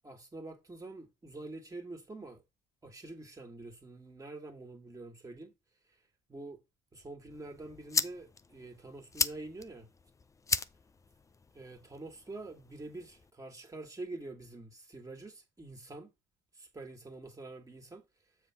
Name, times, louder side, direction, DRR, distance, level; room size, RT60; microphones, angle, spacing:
voice 1, 0.0-2.4 2.8-5.5 6.3-6.6 6.9-9.9 11.6-16.1 16.5-18.0, right 2 dB, 20° right, 1.7 m, -46 dB
sound 1, 7.3-13.3, left 4 dB, 20° left, 0.4 m, -38 dB
7.3 x 3.3 x 5.8 m
cardioid pair, 110°, 17 cm